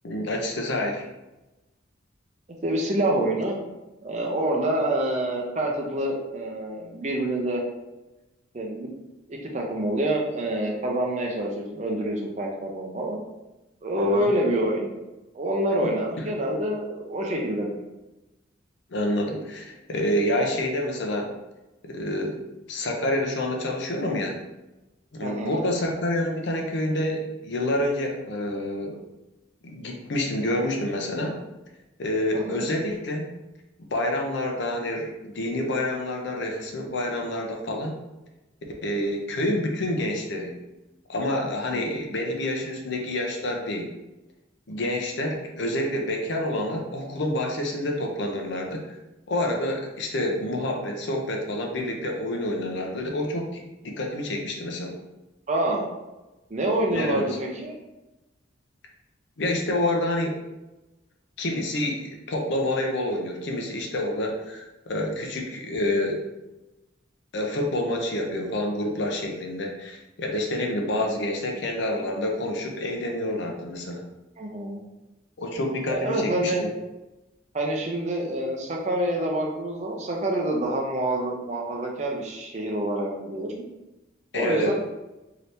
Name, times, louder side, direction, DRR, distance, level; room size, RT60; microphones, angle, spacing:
voice 1, 0.0-1.1 14.0-14.3 15.8-15.9 16.2-16.3 18.9-21.3 21.8-22.4 22.7-24.4 25.1-29.0 29.6-31.3 32.0-33.3 33.9-37.9 38.8-40.5 41.1-43.9 44.7-48.9 49.3-55.0 56.9-57.2 59.4-60.3 61.4-66.2 67.3-74.0 75.4-76.7 84.3-84.7, left 1 dB, 65° left, 1 dB, 0.6 m, -28 dB
voice 2, 2.6-3.6 4.0-7.6 8.5-8.9 9.3-13.2 13.8-14.9 15.3-17.8 25.2-25.6 32.3-32.7 41.7-41.9 55.5-55.9 56.5-57.7 74.4-74.8 75.9-76.6 77.5-83.7 84.3-84.7, right 1 dB, 35° right, 0 dB, 0.5 m, -27 dB
2.8 x 2.7 x 3.3 m, 1.0 s
head